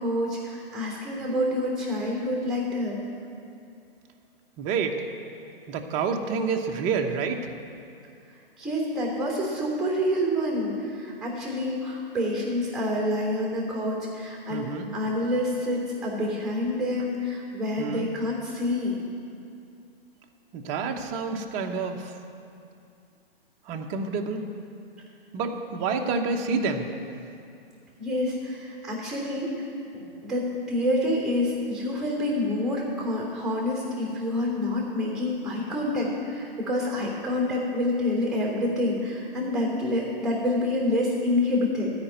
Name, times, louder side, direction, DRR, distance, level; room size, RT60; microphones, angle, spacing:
voice 1, 0.0-3.0 8.6-18.9 28.0-29.7 29.9-41.9, left 1 dB, ahead, -3 dB, 3.3 m, -27 dB
voice 2, 4.6-5.0 5.7-7.5 14.5-14.9 17.8-18.1 20.5-22.1 23.7-24.4 25.3-26.9, right 5 dB, 25° right, 3 dB, 0.9 m, -28 dB
13.5 x 5.1 x 9.3 m, 2.5 s
figure-of-eight pair, 125°, 29 cm